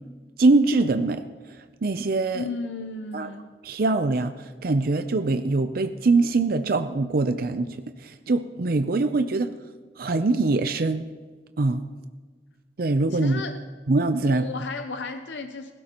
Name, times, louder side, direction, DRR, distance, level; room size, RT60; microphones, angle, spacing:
voice 1, 0.4-1.2 1.5-2.4 3.1-3.3 3.6-9.5 10.0-11.0 11.6-11.8 12.8-13.4 13.9-14.5, right 3 dB, 55° right, 9 dB, 0.6 m, -23 dB
voice 2, 2.3-3.4 13.1-13.6 14.2-15.7, left 3 dB, 85° left, 7 dB, 0.7 m, -34 dB
17.0 x 16.0 x 3.0 m, 1.4 s
head